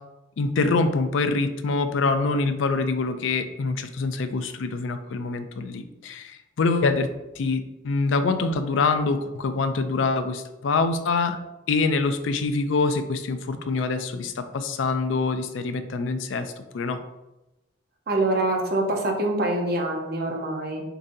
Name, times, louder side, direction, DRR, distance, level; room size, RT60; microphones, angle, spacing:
voice 1, 0.4-7.1 7.4-11.4 11.7-17.0, left 3 dB, 70° left, 9 dB, 0.4 m, -25 dB
voice 2, 18.1-20.8, right 2 dB, 50° right, 1 dB, 0.8 m, -25 dB
6.8 x 2.7 x 2.6 m, 1.0 s
head